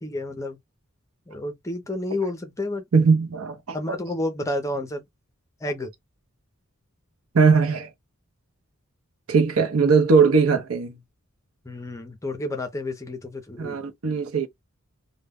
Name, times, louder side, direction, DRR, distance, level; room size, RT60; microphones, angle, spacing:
voice 1, 0.0-0.6 1.3-2.8 3.7-5.0 5.6-5.9 11.6-13.8, left 1 dB, 15° left, 0.5 m, -30 dB
voice 2, 2.9-4.0 7.3-7.9 9.3-11.0 13.6-14.5, right 5 dB, 75° right, 0.6 m, -20 dB
2.1 x 2.1 x 3.4 m
head